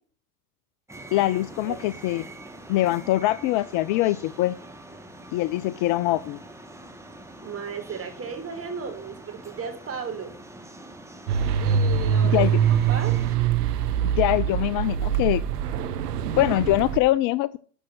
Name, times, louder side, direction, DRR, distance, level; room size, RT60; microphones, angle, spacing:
sound 1, 0.9-13.4, right 1 dB, 5° right, 1.9 m, -44 dB
voice 1, 1.1-2.2 2.7-4.5 5.3-6.4 12.3-12.5 14.2-15.4 16.3-17.6, left 16 dB, 45° left, 18 dB, 0.5 m, -23 dB
voice 2, 7.4-10.3 11.6-12.4 12.7-13.2, right 6 dB, 30° right, 6 dB, 4.0 m, -35 dB
sound 2, 11.3-17.0, right 8 dB, 75° right, 1.2 m, -23 dB
13.5 x 6.3 x 5.9 m, 0.44 s
hypercardioid pair, 90°, 47 cm